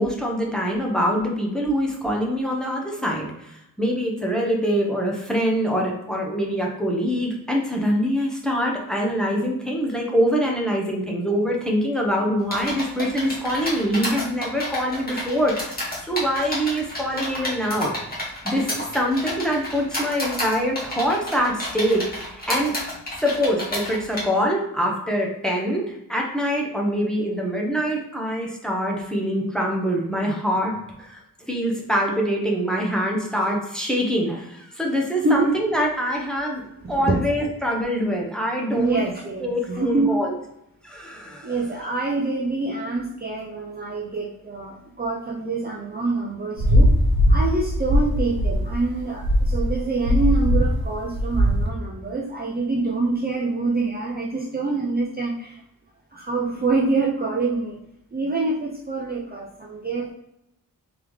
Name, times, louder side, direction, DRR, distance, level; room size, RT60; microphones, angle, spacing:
voice 1, 0.0-17.9 18.4-22.7 23.2-31.2 31.5-36.6 36.9-39.0 39.4-40.3 40.8-41.6, equal, ahead, -1 dB, 0.9 m, -24 dB
sound 1, 12.5-24.2, left 1 dB, 25° left, 1.4 m, -30 dB
voice 2, 36.8-37.2 38.7-40.2 41.4-46.9 47.3-55.6 56.1-57.8 58.1-60.1, right 3 dB, 25° right, -3 dB, 0.5 m, -25 dB
sound 2, 46.6-51.7, equal, 85° right, 0.9 m, -19 dB
3.6 x 3.5 x 3.1 m, 0.84 s
wide cardioid pair, 120°, 36 cm